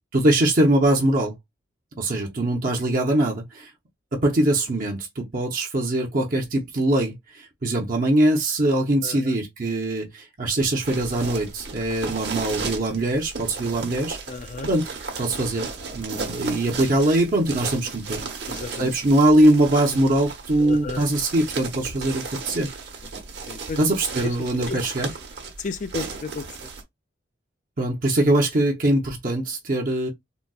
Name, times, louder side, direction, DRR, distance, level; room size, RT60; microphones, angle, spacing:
voice 1, 0.1-1.3 2.0-3.7 4.1-14.2 14.7-14.9 15.2-18.2 18.8-22.7 23.8-25.1 27.8-30.1, right 1 dB, 45° right, 0.7 m, -22 dB
sound 1, 10.8-26.8, right 4 dB, 65° right, 1.0 m, -35 dB
voice 2, 14.3-14.7 18.5-18.9 20.6-21.0 23.5-23.8 24.2-24.3 24.7-24.8 25.6-26.5, left 4 dB, 40° left, 0.4 m, -32 dB
3.9 x 2.2 x 2.3 m
head